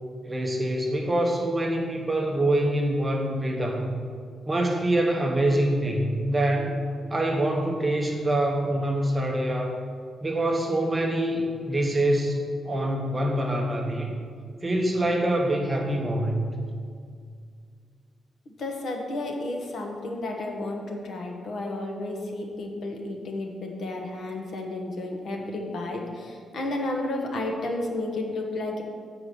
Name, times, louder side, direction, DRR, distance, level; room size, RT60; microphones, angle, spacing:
voice 1, 0.2-3.9 4.5-6.7 7.1-9.8 10.2-14.2 14.6-16.5, right 1 dB, 15° right, 1 dB, 0.8 m, -25 dB
voice 2, 18.5-28.8, left 2 dB, 50° left, 2 dB, 1.1 m, -32 dB
7.3 x 4.8 x 6.7 m, 2.1 s
wide cardioid pair, 175°, 0 cm